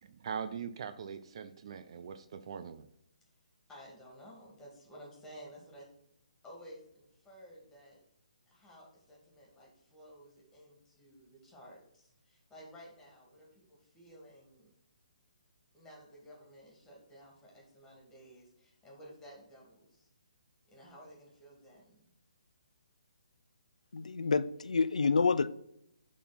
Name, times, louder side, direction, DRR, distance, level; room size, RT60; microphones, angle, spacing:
voice 1, 0.0-2.9, right 7 dB, 50° right, 9 dB, 0.5 m, -41 dB
voice 2, 3.7-5.9 6.4-8.0 8.5-14.7 15.7-20.1 20.7-22.1, equal, 10° left, -3 dB, 2.3 m, -54 dB
voice 3, 23.9-25.5, left 4 dB, 75° left, 14 dB, 0.4 m, -28 dB
8.3 x 3.8 x 4.1 m, 0.75 s
figure-of-eight pair, 140°, 4 cm